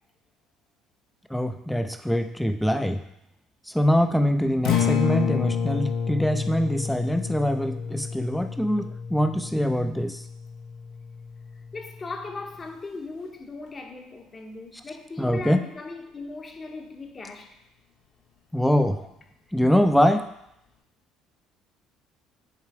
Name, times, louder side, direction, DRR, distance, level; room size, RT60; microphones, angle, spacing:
voice 1, 1.3-3.0 3.7-10.2 15.2-15.6 18.5-19.1 19.5-20.3, equal, 5° left, 8 dB, 0.5 m, -23 dB
Acoustic guitar, 4.5-12.7, left 7 dB, 75° left, 1.1 m, -30 dB
voice 2, 11.7-17.6, left 3 dB, 30° left, 4 dB, 1.0 m, -38 dB
8.2 x 3.3 x 4.7 m, 0.80 s
cardioid pair, 105°, 0 cm